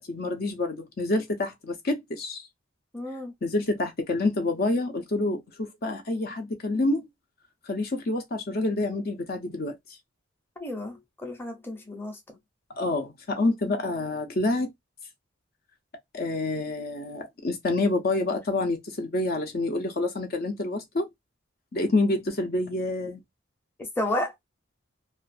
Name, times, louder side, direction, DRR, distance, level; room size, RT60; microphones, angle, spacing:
voice 1, 0.0-2.5 3.4-7.1 7.7-9.8 12.8-14.7 16.1-21.1 21.7-23.2, left 2 dB, 50° left, 0.6 m, -27 dB
voice 2, 2.9-3.3 10.6-12.4 23.8-24.3, left 1 dB, 10° left, 0.7 m, -32 dB
2.4 x 2.3 x 2.4 m
head